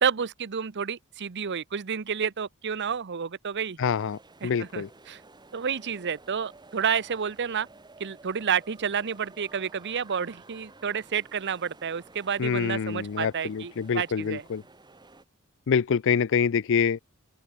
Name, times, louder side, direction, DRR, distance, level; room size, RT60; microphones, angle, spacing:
voice 1, 0.0-3.8 4.4-5.2 5.5-7.7 8.0-14.4, right 7 dB, 55° right, 0.7 m, -30 dB
voice 2, 3.8-4.9 12.4-14.6 15.7-17.0, left 6 dB, 60° left, 0.5 m, -26 dB
sound 1, 3.9-15.2, right 3 dB, 20° right, 1.5 m, -53 dB
open air
head